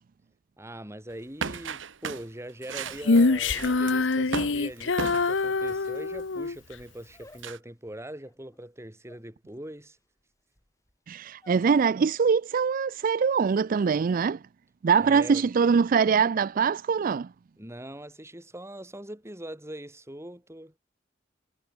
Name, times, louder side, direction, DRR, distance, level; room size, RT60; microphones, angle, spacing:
voice 1, 0.6-10.0 15.0-15.4 17.6-20.7, right 1 dB, 15° right, 5.2 m, -42 dB
sound 1, 1.4-5.9 7.4-7.6, right 5 dB, 85° right, 1.1 m, -35 dB
sound 2, 2.8-4.7 5.0-11.8 12.1-12.6 12.9-13.4, left 1 dB, 15° left, 6.7 m, -57 dB
Female singing, 3.0-6.6, left 3 dB, 75° left, 0.9 m, -24 dB
voice 2, 11.1-14.4 14.8-17.3, right 6 dB, 45° right, 0.4 m, -23 dB
head